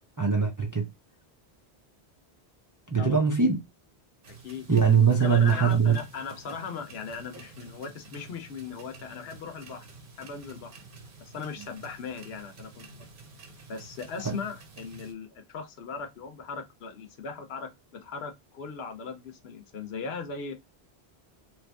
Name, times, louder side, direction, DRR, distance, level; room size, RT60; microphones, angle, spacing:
voice 1, 0.2-0.9 2.9-3.6 4.7-6.0 14.2-14.4, right 6 dB, 25° right, 0.4 m, -22 dB
sound 1, 4.2-15.1, right 3 dB, 55° right, 1.0 m, -50 dB
voice 2, 5.2-9.9 10.2-10.7 11.2-12.9 13.7-20.5, left 5 dB, 70° left, 0.9 m, -38 dB
3.0 x 2.5 x 3.3 m
omnidirectional pair, 1.1 m